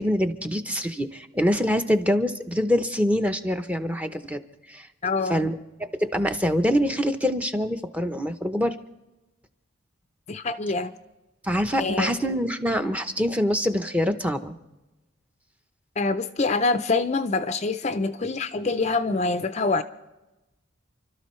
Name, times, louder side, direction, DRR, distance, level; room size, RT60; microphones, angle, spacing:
voice 1, 0.0-4.4 4.7-4.9 5.3-8.8 11.4-14.5, equal, 5° right, 0.7 m, -25 dB
voice 2, 5.0-5.5 10.3-10.9 11.8-12.2 16.0-19.8, left 3 dB, 30° left, 0.5 m, -25 dB
29.5 x 12.5 x 3.2 m
head